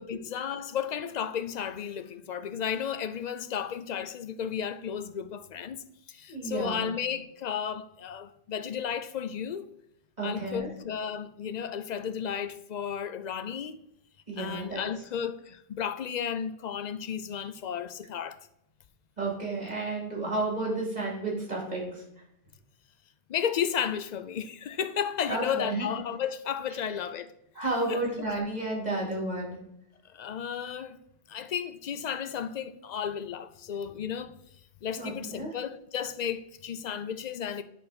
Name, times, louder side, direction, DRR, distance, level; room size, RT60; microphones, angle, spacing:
voice 1, 0.0-9.7 10.2-13.8 14.4-18.4 23.3-27.3 27.9-28.0 30.0-31.0 31.3-34.4 34.8-37.6, left 8 dB, 55° left, 0.5 m, -33 dB
voice 2, 6.3-6.9 10.2-10.7 14.3-14.8 19.2-22.0 25.3-25.9 27.5-29.6 35.0-35.5, right 2 dB, 40° right, 2.7 m, -32 dB
8.8 x 3.5 x 5.9 m
omnidirectional pair, 1.1 m